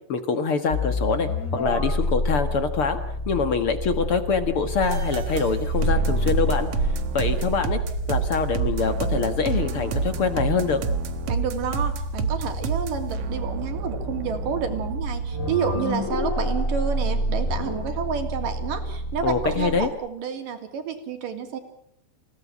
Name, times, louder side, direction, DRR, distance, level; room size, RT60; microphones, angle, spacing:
voice 1, 0.1-3.0 3.3-6.7 7.1-7.8 8.1-10.8 19.2-19.9, left 5 dB, 60° left, 9 dB, 1.5 m, -24 dB
sound 1, 0.7-19.9, left 1 dB, 20° left, 2.6 m, -29 dB
sound 2, 4.8-15.5, right 6 dB, 80° right, 1.3 m, -29 dB
voice 2, 11.3-21.6, right 7 dB, 55° right, 6 dB, 4.3 m, -29 dB
30.0 x 17.5 x 7.4 m, 0.68 s
omnidirectional pair, 4.9 m